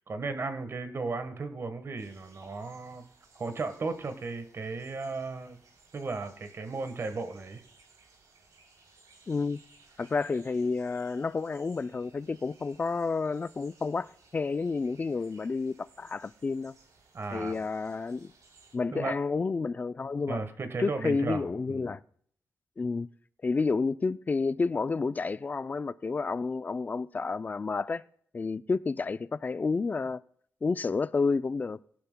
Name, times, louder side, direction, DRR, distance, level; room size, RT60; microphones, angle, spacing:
voice 1, 0.0-3.0 3.3-5.6 5.9-7.6 17.1-17.5 18.9-19.2 20.3-21.9, right 3 dB, 45° right, 1.3 m, -35 dB
sound 1, 2.0-18.8, right 4 dB, 80° right, 3.2 m, -61 dB
voice 2, 9.3-9.6 10.0-16.7 17.3-18.3 18.7-20.4 20.8-22.0 22.8-23.1 23.4-28.0 28.3-30.2 30.6-31.8, left 4 dB, 30° left, 0.3 m, -30 dB
20.5 x 11.0 x 2.2 m
wide cardioid pair, 130°, 6 cm